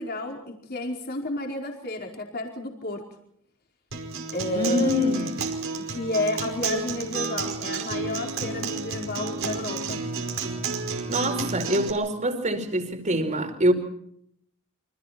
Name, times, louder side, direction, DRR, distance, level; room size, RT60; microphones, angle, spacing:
voice 1, 0.0-3.0 4.3-5.3 5.8-10.0, left 2 dB, 50° left, 4.7 m, -31 dB
Acoustic guitar, 3.9-11.9, right 4 dB, 65° right, 5.0 m, -31 dB
voice 2, 4.5-5.3 11.1-13.7, equal, 35° right, 4.8 m, -24 dB
29.0 x 26.0 x 4.4 m
head